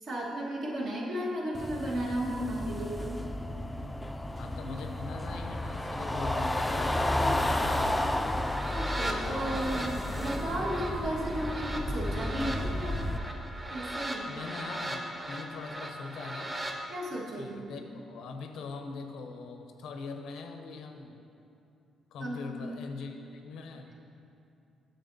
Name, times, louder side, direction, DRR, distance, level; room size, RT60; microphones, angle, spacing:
voice 1, 0.0-3.2 8.7-13.1 13.7-14.3 16.9-17.8 22.2-22.5, right 1 dB, 65° right, -4 dB, 1.5 m, -34 dB
sound 1, 1.5-13.2, left 1 dB, 10° left, 0.4 m, -32 dB
voice 2, 4.3-8.0 14.2-16.6 17.4-21.1 22.1-23.9, left 4 dB, 85° left, 5 dB, 0.6 m, -42 dB
sound 2, 8.3-16.8, right 1 dB, 20° right, 0.8 m, -38 dB
9.1 x 6.6 x 2.7 m, 2.7 s
cardioid pair, 90°, 0 cm